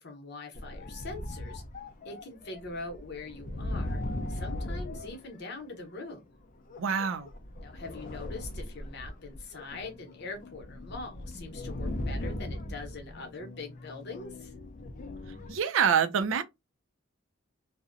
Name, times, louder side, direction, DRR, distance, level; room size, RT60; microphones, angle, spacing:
voice 1, 0.0-1.6 2.0-4.0 4.3-6.3 7.6-14.5, left 3 dB, 60° left, 0.8 m, -42 dB
sound 1, 0.5-5.9 6.7-15.6, left 1 dB, 40° left, 0.4 m, -39 dB
voice 2, 6.8-7.3 15.5-16.4, right 7 dB, 70° right, 0.4 m, -26 dB
2.6 x 2.1 x 2.5 m
head